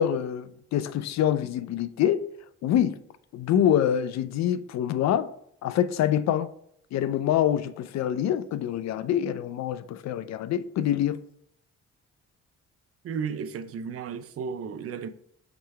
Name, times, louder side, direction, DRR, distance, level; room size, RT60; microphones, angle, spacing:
voice 1, 0.0-2.2 2.6-3.0 3.3-5.3 5.6-6.5 6.9-11.2, left 10 dB, 65° left, 0.5 m, -25 dB
voice 2, 13.0-15.1, right 6 dB, 50° right, 0.5 m, -33 dB
5.0 x 3.3 x 3.3 m
cardioid pair, 90°, 30 cm